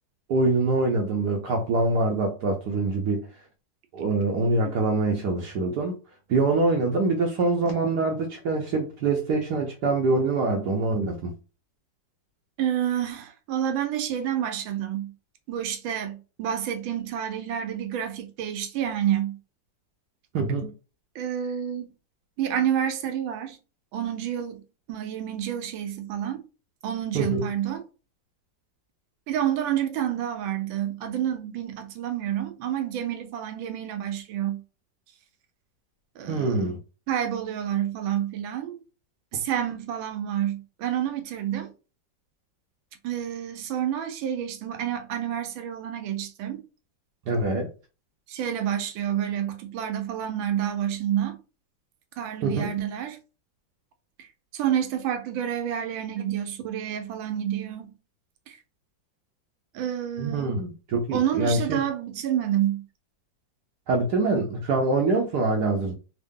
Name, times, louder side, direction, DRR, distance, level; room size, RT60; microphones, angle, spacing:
voice 1, 0.3-3.3 3.9-6.0 6.3-11.3 20.3-20.7 27.1-27.4 36.3-36.8 47.3-47.7 52.4-52.7 60.2-61.8 63.9-66.0, right 3 dB, 70° right, 1.1 m, -24 dB
voice 2, 12.6-15.1 15.5-19.4 21.1-21.9 22.4-23.6 23.9-26.4 26.8-27.8 29.3-34.6 36.2-36.7 37.1-38.8 39.3-41.7 43.0-46.6 48.3-51.4 52.2-53.2 54.2-54.3 54.5-57.9 58.5-58.6 59.7-60.6 61.1-62.8, right 10 dB, 90° right, 1.5 m, -29 dB
3.6 x 2.0 x 3.5 m
omnidirectional pair, 2.1 m